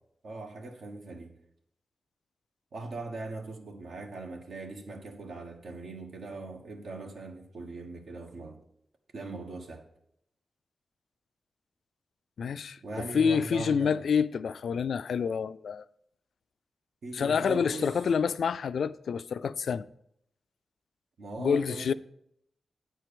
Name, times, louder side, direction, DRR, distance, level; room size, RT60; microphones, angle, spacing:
voice 1, 0.2-1.3 2.7-8.6 9.1-9.9 12.8-14.1 17.0-17.9 21.2-21.9, right 2 dB, 75° right, 1.3 m, -40 dB
voice 2, 12.4-12.8 13.1-15.8 17.1-19.9 21.4-21.9, left 6 dB, 80° left, 0.3 m, -27 dB
9.1 x 4.5 x 6.7 m
cardioid pair, 85°, 0 cm